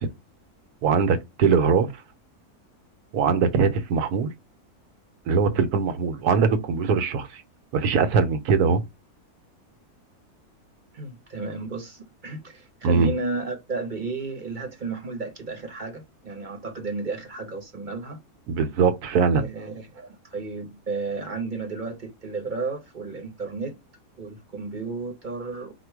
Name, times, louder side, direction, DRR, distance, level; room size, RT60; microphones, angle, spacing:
voice 1, 0.8-1.9 3.1-4.3 5.3-7.3 7.7-8.8 12.8-13.1 18.5-19.4, right 5 dB, 85° right, 1.2 m, -21 dB
voice 2, 10.9-18.2 19.3-23.8 24.2-25.7, right 3 dB, 40° right, 0.8 m, -33 dB
5.1 x 2.2 x 4.5 m
omnidirectional pair, 1.6 m